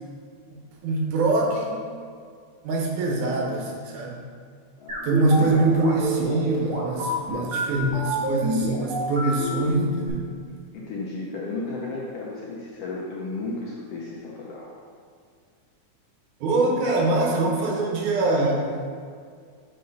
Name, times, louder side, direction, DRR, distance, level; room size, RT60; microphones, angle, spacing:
voice 1, 0.8-1.8 2.6-4.2 5.0-10.3 16.4-18.8, right 2 dB, 80° right, -1 dB, 2.4 m, -24 dB
voice 2, 4.8-5.5 10.7-14.7 16.6-16.8, left 3 dB, 75° left, -4 dB, 1.5 m, -34 dB
sound 1, 4.9-10.1, left 1 dB, 45° right, 1.2 m, -28 dB
6.6 x 3.8 x 5.3 m, 2.1 s
omnidirectional pair, 3.5 m